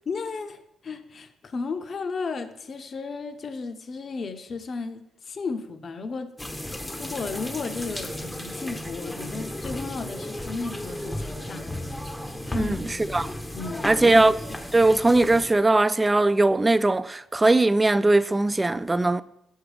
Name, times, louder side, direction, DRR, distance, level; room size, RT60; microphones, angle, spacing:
voice 1, 0.1-6.3 7.0-11.6 12.4-13.0 13.5-14.3, left 4 dB, 45° left, 0.7 m, -34 dB
sound 1, 6.4-15.5, left 1 dB, 10° left, 0.7 m, -34 dB
voice 2, 12.5-13.3 13.8-14.4 14.7-19.2, right 2 dB, 20° right, 0.3 m, -20 dB
6.5 x 5.8 x 4.9 m
cardioid pair, 90°, 0 cm